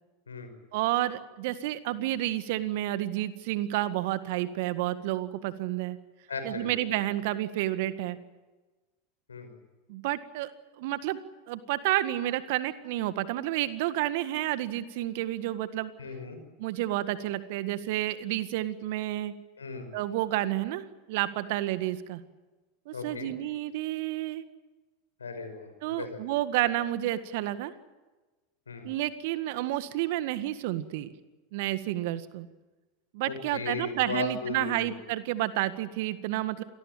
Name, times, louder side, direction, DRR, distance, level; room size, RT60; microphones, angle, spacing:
voice 1, 0.7-6.0 6.4-8.2 9.9-10.5 10.8-11.2 11.5-15.9 16.6-19.3 19.9-22.2 22.9-24.4 25.8-27.7 28.8-31.1 31.5-32.5 33.1-36.6, right 15 dB, 60° right, 13 dB, 1.8 m, -30 dB
voice 2, 6.3-6.7 7.0-7.1 9.3-9.5 16.0-16.4 19.6-19.9 22.9-23.3 25.2-26.2 28.7-28.9 33.3-35.0, left 4 dB, 85° left, 7 dB, 5.8 m, -37 dB
27.0 x 19.0 x 9.0 m, 1.2 s
figure-of-eight pair, 85°, 0 cm